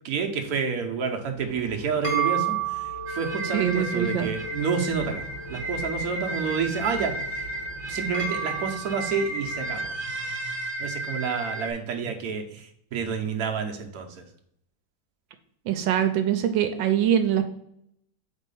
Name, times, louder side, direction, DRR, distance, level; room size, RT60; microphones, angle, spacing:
voice 1, 0.0-2.6 3.1-7.2 7.9-9.9 10.8-14.1, right 6 dB, 60° right, 2 dB, 1.2 m, -29 dB
sound 1, 1.4-9.9, right 7 dB, 25° left, 1.9 m, -34 dB
sound 2, 3.1-11.7, right 1 dB, 40° right, 0.8 m, -33 dB
voice 2, 3.4-4.3 15.7-17.5, right 9 dB, 85° right, 7 dB, 1.4 m, -23 dB
4.6 x 4.1 x 5.3 m, 0.73 s
omnidirectional pair, 2.0 m